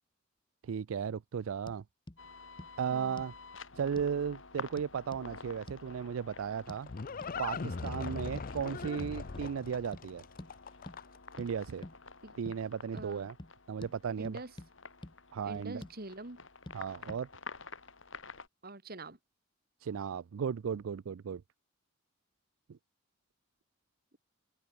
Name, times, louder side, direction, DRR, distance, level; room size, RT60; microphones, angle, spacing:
voice 1, 0.6-1.8 2.8-3.3 3.8-6.9 7.4-10.2 11.4-11.9 12.4-13.3 13.7-14.4 15.3-15.8 16.7-17.3 19.8-21.4 22.7-22.8, right 7 dB, 80° right, 0.4 m, -35 dB
sound 1, 1.7-1.8 2.1-2.2 2.6-2.7 3.2-3.4 4.0-4.1 4.8-5.3 5.7-5.8 6.7-6.8 7.2-7.4 7.9-8.0 8.4-8.5 8.8-9.0 9.3-9.5 9.9-10.1 10.4-10.5 10.9-11.0 11.4-11.5 11.8-12.0 12.4-12.6 13.0-13.1 13.4-13.5 13.8-13.9 14.2-14.7 15.0-15.1 15.5-16.0 16.7-16.8 17.1-17.2, left 1 dB, 25° left, 1.0 m, -48 dB
sound 2, 2.2-18.5, left 4 dB, 65° left, 5.2 m, -50 dB
voice 2, 2.9-3.2 12.2-12.3 12.9-13.3 14.2-14.5 15.4-16.4 18.6-19.2 24.1-24.2, right 2 dB, 45° right, 2.6 m, -45 dB
Livestock farm animals working animals, 6.3-11.3, left 4 dB, 45° left, 0.6 m, -41 dB
open air
head